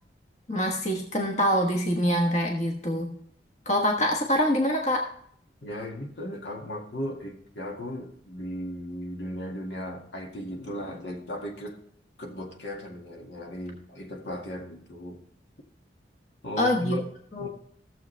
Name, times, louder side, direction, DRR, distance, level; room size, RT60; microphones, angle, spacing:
voice 1, 0.5-3.1 3.6-5.0 16.6-17.0 17.3-17.5, equal, 40° left, 1 dB, 1.3 m, -25 dB
voice 2, 5.6-11.8 12.2-15.2 16.4-17.0 17.4-17.5, left 1 dB, 75° left, 1 dB, 2.0 m, -36 dB
15.0 x 7.3 x 3.3 m, 0.64 s
head